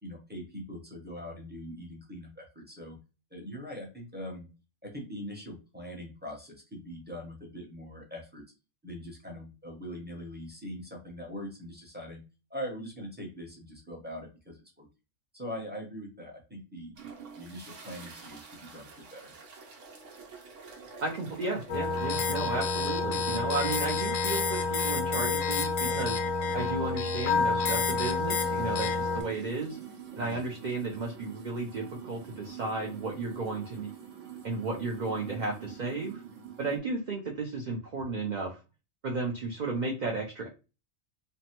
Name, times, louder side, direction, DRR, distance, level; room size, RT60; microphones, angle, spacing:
voice 1, 0.0-3.0 3.3-4.5 4.8-8.4 8.8-12.2 12.5-14.9 15.3-17.0 17.4-18.5 18.7-19.3 30.2-30.4, equal, 10° right, -1 dB, 0.6 m, -42 dB
sound 1, 17.0-36.8, right 6 dB, 75° right, 1.1 m, -47 dB
voice 2, 21.0-26.2 26.5-29.8 30.2-33.9 34.4-36.2 36.6-38.6 39.0-40.5, right 3 dB, 55° right, -1 dB, 0.5 m, -34 dB
sound 2, 21.7-29.2, left 4 dB, 85° left, 1.0 m, -29 dB
3.3 x 2.0 x 2.8 m, 0.30 s
omnidirectional pair, 1.3 m